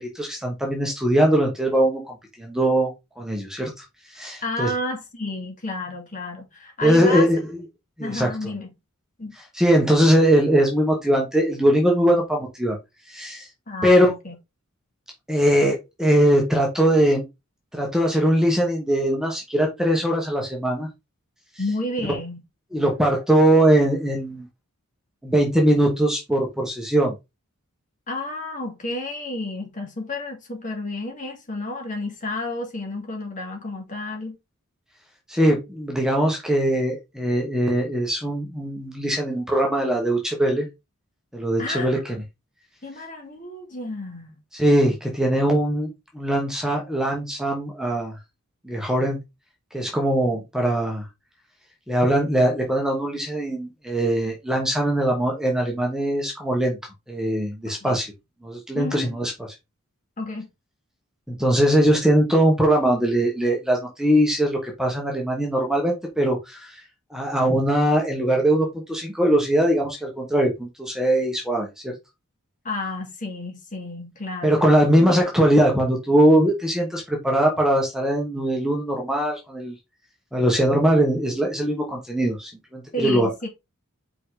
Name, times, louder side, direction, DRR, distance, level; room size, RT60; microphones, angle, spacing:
voice 1, 0.0-3.7 4.1-4.7 6.8-7.4 8.0-8.3 9.5-12.8 13.1-13.5 13.8-14.1 15.3-17.2 17.7-20.9 22.7-24.5 25.2-27.1 35.3-40.7 41.3-42.1 44.5-45.9 46.1-48.2 48.6-49.2 49.7-51.0 51.9-56.8 57.1-58.1 58.4-59.3 61.3-66.8 67.1-71.9 74.4-79.7 80.3-83.5, right 1 dB, ahead, 1.5 m, -21 dB
voice 2, 4.4-7.3 8.0-8.7 9.2-9.3 13.7-14.3 21.6-22.4 28.1-34.4 41.6-41.9 42.8-44.4 57.8-58.0 58.7-59.2 60.2-60.5 72.6-74.6 75.0-75.1 82.9-83.5, left 2 dB, 35° left, 2.6 m, -31 dB
5.6 x 4.9 x 3.9 m
head